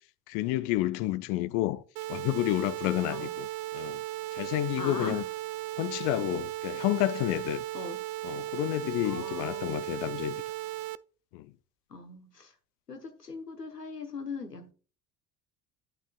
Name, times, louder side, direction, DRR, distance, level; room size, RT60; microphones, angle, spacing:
voice 1, 0.3-1.8 2.1-3.5 3.7-4.0 4.3-5.2 5.8-7.6 8.2-10.4 11.3-11.5, left 16 dB, 45° left, 0.5 m, -30 dB
sound 1, 2.0-11.0, right 16 dB, 40° right, 0.4 m, -36 dB
voice 2, 4.7-5.3 7.7-8.0 9.0-9.8 11.9-12.5 12.9-14.7, left 4 dB, 85° left, 1.2 m, -40 dB
11.0 x 8.9 x 2.3 m
figure-of-eight pair, 60°, 47 cm